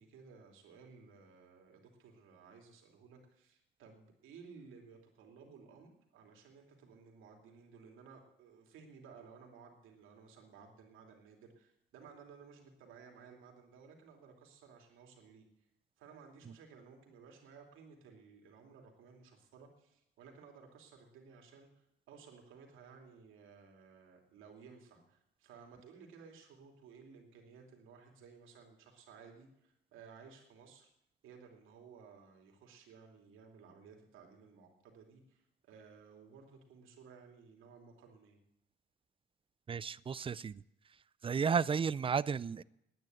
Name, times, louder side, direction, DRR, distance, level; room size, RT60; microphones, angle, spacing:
voice 1, 0.0-15.5 16.0-21.7 22.1-30.9 31.2-38.4, right 5 dB, 85° right, 2 dB, 2.8 m, -57 dB
voice 2, 39.7-40.6 41.2-42.6, right 6 dB, 25° right, 21 dB, 0.4 m, -33 dB
10.0 x 9.4 x 9.1 m, 0.80 s
cardioid pair, 90°, 20 cm